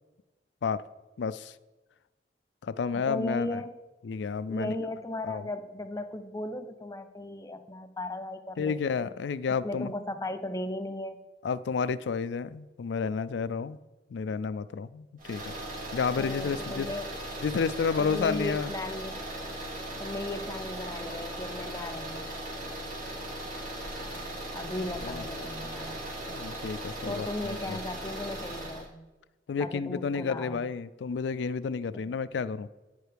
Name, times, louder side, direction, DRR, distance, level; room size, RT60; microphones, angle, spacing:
voice 1, 1.2-1.5 2.6-3.6 4.0-4.7 5.2-5.4 8.6-9.9 11.4-13.8 14.1-15.5 15.9-16.9 17.4-18.7 25.0-25.2 26.3-27.8 29.5-32.7, left 5 dB, 80° left, 15 dB, 0.4 m, -31 dB
voice 2, 2.9-3.7 4.5-9.0 9.5-11.2 16.2-17.1 18.0-19.2 20.0-22.3 23.8-26.0 27.1-29.0 29.6-30.6 31.9-32.0, left 1 dB, 20° left, 8 dB, 0.6 m, -37 dB
sound 1, 15.2-28.9, right 1 dB, 50° right, 1.7 m, -38 dB
9.0 x 4.7 x 5.0 m, 1.1 s
head